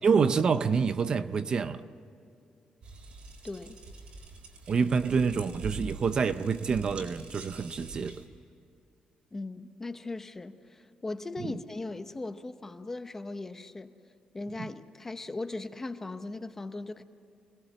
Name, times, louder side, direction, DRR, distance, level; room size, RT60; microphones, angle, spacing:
voice 1, 0.0-1.9 4.7-8.2 11.4-11.5 14.6-14.7, right 5 dB, 35° right, 0.6 m, -27 dB
sound 1, 2.8-8.3, right 2 dB, 55° right, 3.9 m, -45 dB
voice 2, 3.4-3.8 9.3-13.9 14.3-17.0, left 2 dB, 15° left, 0.8 m, -38 dB
26.0 x 18.5 x 7.9 m
wide cardioid pair, 180°, 2 cm